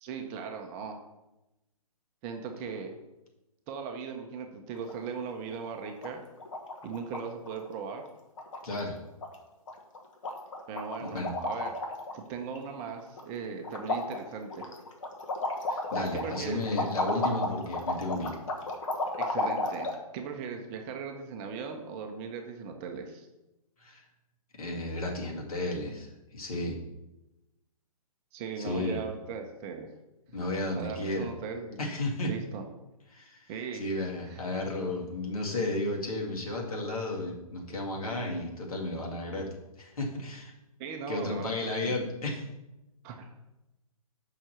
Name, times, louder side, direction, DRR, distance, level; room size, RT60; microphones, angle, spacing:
voice 1, 0.0-1.0 2.2-2.9 3.7-6.2 6.8-8.0 10.7-11.7 12.1-14.7 16.1-16.6 19.2-23.3 28.3-29.9 30.4-30.5 30.8-31.8 32.2-32.7 33.5-33.8 34.3-34.4 40.8-41.9 43.0-43.3, right 6 dB, 25° right, 4 dB, 0.7 m, -38 dB
sound 1, 4.7-5.2 5.5-5.6 5.8-6.1 6.4-7.2 7.5-7.7 8.0-8.1 8.4-8.9 9.2-9.4 9.7-10.0 10.2-12.2 12.6-13.3 13.6-20.0, left 2 dB, 60° left, 1.3 m, -33 dB
voice 2, 8.6-9.0 11.0-11.3 15.7-18.4 23.8-24.0 24.6-26.8 28.6-29.0 30.3-31.3 31.8-32.3 33.1-39.5 39.8-40.5 41.1-42.5, left 2 dB, 75° left, -1 dB, 2.1 m, -33 dB
5.7 x 4.4 x 6.4 m, 0.98 s
hypercardioid pair, 145°, 19 cm